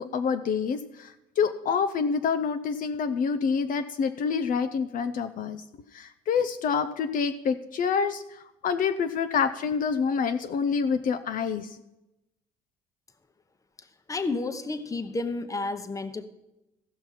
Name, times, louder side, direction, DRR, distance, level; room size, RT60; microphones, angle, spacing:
voice 1, 0.0-5.6 5.9-11.8, left 6 dB, 55° left, 9 dB, 0.6 m, -27 dB
voice 2, 14.1-16.3, left 3 dB, 20° left, 10 dB, 0.9 m, -31 dB
15.5 x 5.9 x 5.7 m, 0.93 s
cardioid pair, 110°, 17 cm